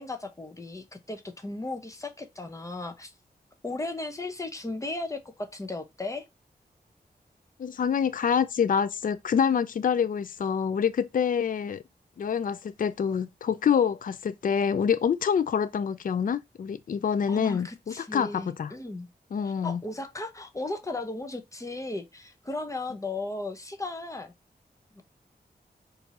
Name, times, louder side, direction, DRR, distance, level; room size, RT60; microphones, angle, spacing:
voice 1, 0.0-3.1 3.6-6.2 17.3-19.1 19.6-24.3 24.9-25.0, left 2 dB, 20° left, 0.8 m, -36 dB
voice 2, 7.6-11.8 12.2-18.7 19.3-19.8, left 7 dB, 55° left, 0.4 m, -26 dB
4.5 x 2.7 x 4.2 m
wide cardioid pair, 90°, 17 cm